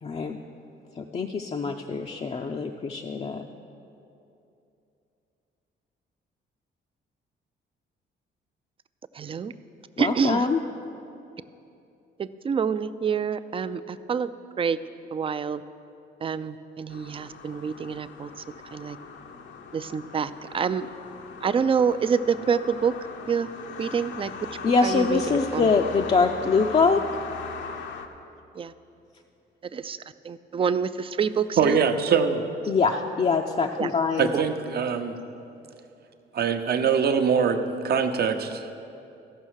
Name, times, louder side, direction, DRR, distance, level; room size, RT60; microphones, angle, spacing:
voice 1, 0.0-0.4 1.0-3.4 10.0-10.6 24.6-27.0 32.7-34.3, left 4 dB, 30° left, 3 dB, 0.5 m, -24 dB
voice 2, 9.1-9.5 10.0-10.5 12.2-14.3 14.6-14.8 15.1-15.6 16.2-18.3 18.7-19.0 19.7-20.9 21.4-22.9 23.3-23.5 23.8-24.3 24.8-25.7 28.5-28.7 29.7-30.0 30.2-31.8 33.8-33.9 34.3-34.4, right 6 dB, 30° right, 13 dB, 0.4 m, -27 dB
sound 1, 16.9-28.1, left 5 dB, 70° left, 0.8 m, -39 dB
voice 3, 31.6-32.4 34.2-35.2 36.3-38.8, right 6 dB, 55° right, 7 dB, 0.8 m, -23 dB
14.5 x 5.6 x 6.4 m, 2.7 s
cardioid pair, 90°, 20 cm